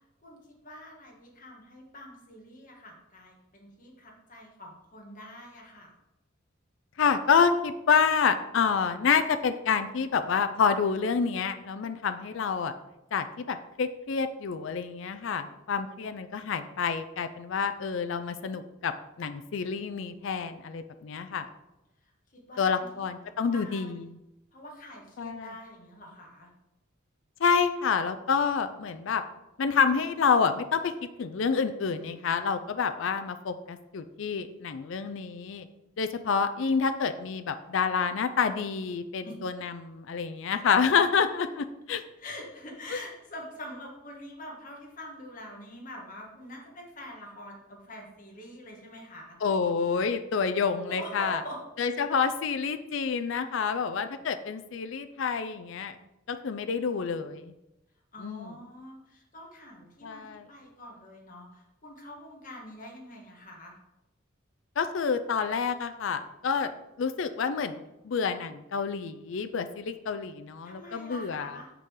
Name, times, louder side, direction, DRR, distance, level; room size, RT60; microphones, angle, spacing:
voice 1, 0.2-5.9 22.3-24.1 24.5-26.5 39.2-39.4 42.2-49.4 50.9-51.6 58.1-63.8 70.6-71.7, left 1 dB, 40° left, -1 dB, 1.7 m, -45 dB
voice 2, 7.0-12.7 13.1-18.9 19.2-21.5 22.6-24.2 25.2-25.5 27.4-29.2 29.6-30.9 31.2-35.7 36.0-42.0 42.9-43.0 49.4-51.4 51.8-56.0 56.3-57.5 58.2-58.5 60.0-60.5 64.8-66.7 67.0-71.6, left 6 dB, 65° left, 9 dB, 0.4 m, -28 dB
6.7 x 3.8 x 6.4 m, 0.92 s
head